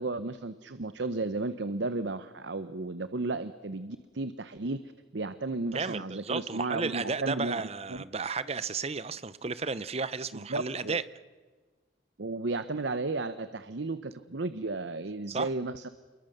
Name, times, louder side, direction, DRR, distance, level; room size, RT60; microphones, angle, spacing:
voice 1, 0.0-4.8 5.1-7.6 7.9-8.0 10.3-11.0 12.2-15.9, right 3 dB, 65° right, 12 dB, 0.8 m, -34 dB
voice 2, 5.7-11.0 15.3-15.5, right 4 dB, 30° right, 16 dB, 0.8 m, -33 dB
29.0 x 22.5 x 6.7 m, 1.4 s
head